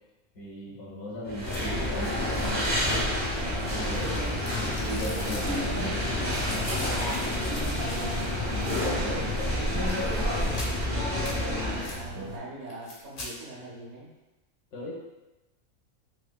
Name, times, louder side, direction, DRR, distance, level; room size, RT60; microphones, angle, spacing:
voice 1, 0.3-3.3 3.7-7.2 8.5-10.1 14.7-14.9, left 1 dB, 85° left, -5 dB, 1.5 m, -38 dB
sound 1, 1.3-12.0, left 1 dB, 30° right, 0.4 m, -29 dB
sound 2, 1.4-1.9 2.6-3.2 3.7-5.7 6.3-8.4 8.7-8.8 9.8-10.1 10.5-10.8 11.2-11.4 11.8-12.0 12.7-13.3, left 1 dB, 65° left, 0.4 m, -43 dB
sound 3, 3.3-12.4, right 2 dB, 90° right, 0.4 m, -39 dB
voice 2, 11.9-14.1, right 1 dB, 70° right, -6 dB, 1.4 m, -42 dB
4.1 x 2.7 x 2.2 m, 1.0 s
omnidirectional pair, 1.6 m